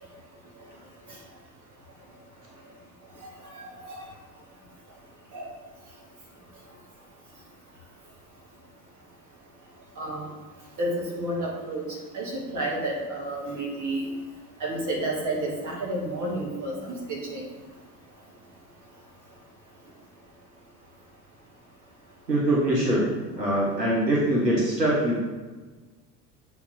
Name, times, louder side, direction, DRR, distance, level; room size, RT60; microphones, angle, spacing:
voice 1, 3.5-4.0 5.3-5.4 10.0-10.3 10.8-11.8 12.1-14.1 14.6-17.5, right 1 dB, 40° right, -3 dB, 2.2 m, -30 dB
voice 2, 22.3-25.2, right 1 dB, 85° right, -5 dB, 1.2 m, -23 dB
7.0 x 4.3 x 4.2 m, 1.3 s
figure-of-eight pair, 65°, 48 cm